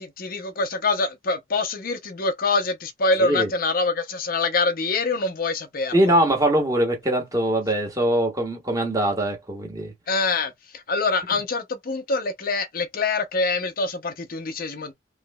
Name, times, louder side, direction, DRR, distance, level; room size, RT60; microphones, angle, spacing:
voice 1, 0.0-6.2 10.1-14.9, left 3 dB, 50° left, 0.6 m, -25 dB
voice 2, 5.9-9.9, right 1 dB, 20° right, 1.4 m, -22 dB
4.7 x 3.1 x 2.2 m
head